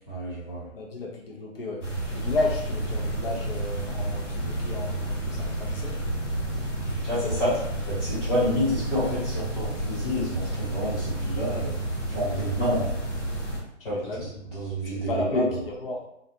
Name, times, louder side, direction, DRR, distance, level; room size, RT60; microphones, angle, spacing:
voice 1, 0.1-0.7 7.0-7.5 7.9-11.7 12.1-12.9 13.8-14.0 14.5-15.4, equal, 15° left, -9 dB, 0.9 m, -28 dB
voice 2, 0.7-1.8 2.1-6.0 7.1-7.6 13.8-14.3 14.9-16.0, left 2 dB, 50° left, -2 dB, 0.8 m, -32 dB
sound 1, 1.8-13.6, right 1 dB, 85° left, 1.2 m, -30 dB
2.5 x 2.3 x 2.6 m, 0.77 s
figure-of-eight pair, 145°, 36 cm